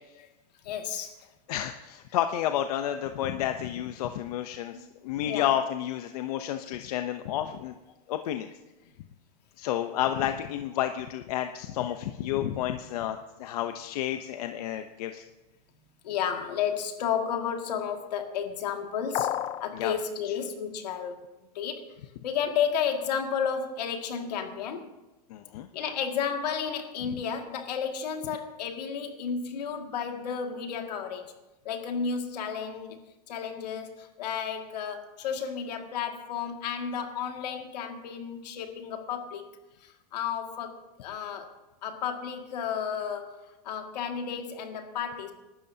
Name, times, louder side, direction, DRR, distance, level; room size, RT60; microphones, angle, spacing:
voice 1, 0.6-1.1 4.7-4.9 5.2-5.5 16.0-21.2 21.5-21.9 22.2-24.9 25.7-31.3 31.6-33.0 33.3-39.5 39.8-41.5 41.8-43.4 43.6-45.3, left 7 dB, 90° left, 3 dB, 2.2 m, -32 dB
voice 2, 1.5-7.7 8.1-8.5 9.6-15.2 19.7-19.9 25.3-25.7, left 11 dB, 70° left, 8 dB, 0.8 m, -31 dB
sound 1, 19.1-19.7, left 12 dB, 25° left, 0.4 m, -29 dB
28.5 x 12.5 x 2.8 m, 1.0 s
supercardioid pair, 160°, 20 cm